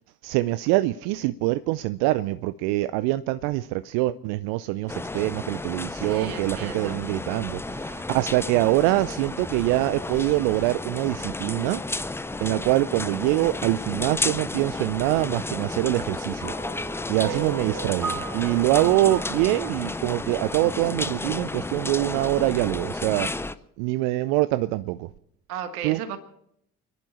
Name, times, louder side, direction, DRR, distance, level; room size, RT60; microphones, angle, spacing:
voice 1, 0.2-11.8 12.4-16.5 17.1-23.4 23.8-25.1 25.8-26.0, right 17 dB, 60° right, 0.6 m, -24 dB
sound 1, 4.9-23.5, left 2 dB, 5° left, 0.5 m, -32 dB
voice 2, 5.9-7.0 17.2-17.4 25.5-26.2, right 8 dB, 75° right, 1.7 m, -36 dB
sound 2, 16.4-20.8, right 5 dB, 40° right, 4.0 m, -37 dB
29.0 x 11.0 x 4.3 m
figure-of-eight pair, 55°, 45 cm